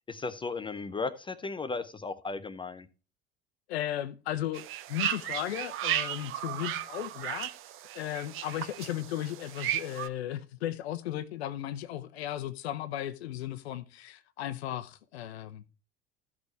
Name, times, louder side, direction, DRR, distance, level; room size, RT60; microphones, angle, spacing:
voice 1, 0.1-2.9, left 4 dB, 15° left, 0.6 m, -35 dB
voice 2, 3.7-7.5 7.9-15.6, left 12 dB, 65° left, 0.7 m, -36 dB
sound 1, 4.5-10.1, right 12 dB, 40° right, 0.6 m, -35 dB
14.0 x 6.1 x 3.2 m
figure-of-eight pair, 70°, 34 cm